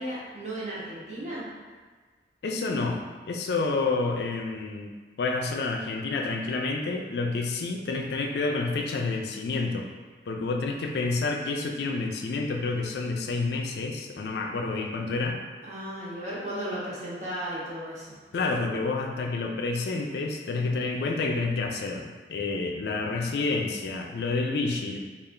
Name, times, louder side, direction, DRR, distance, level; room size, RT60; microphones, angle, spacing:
voice 1, 0.0-1.4 15.6-18.2, right 1 dB, 40° right, -7 dB, 0.9 m, -35 dB
voice 2, 2.4-3.0 3.3-4.9 5.2-9.9 10.3-15.4 18.3-25.0, left 3 dB, 65° left, 2 dB, 0.4 m, -29 dB
3.2 x 2.4 x 3.6 m, 1.4 s
head